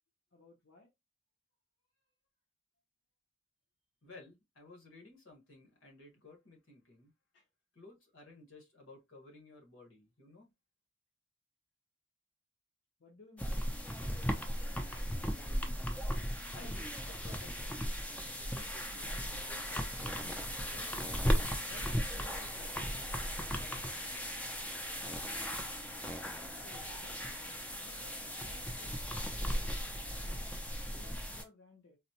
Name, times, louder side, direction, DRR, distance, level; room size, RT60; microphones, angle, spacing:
voice 1, 0.3-0.9 7.3-7.5 13.0-13.7 26.6-27.4 27.8-28.9 30.0-30.4 31.0-32.0, left 2 dB, 70° left, 0.7 m, -59 dB
voice 2, 4.0-7.1 7.7-10.5 16.4-18.0 18.3-21.0 21.6-23.9, left 2 dB, 85° left, 1.4 m, -56 dB
sound 1, 13.4-31.4, equal, 5° left, 0.4 m, -37 dB
4.0 x 2.1 x 2.8 m
head